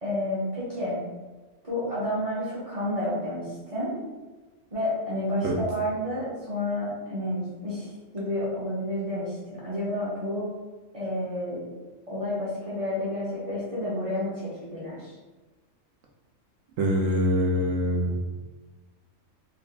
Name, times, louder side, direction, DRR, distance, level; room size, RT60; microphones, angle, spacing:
voice 1, 0.0-1.0 1.6-3.9 4.7-10.5 10.9-11.6 12.1-15.1, left 1 dB, 30° right, -8 dB, 0.9 m, -30 dB
voice 2, 16.8-18.1, equal, 75° right, -1 dB, 1.0 m, -24 dB
3.8 x 3.5 x 2.4 m, 1.2 s
omnidirectional pair, 1.4 m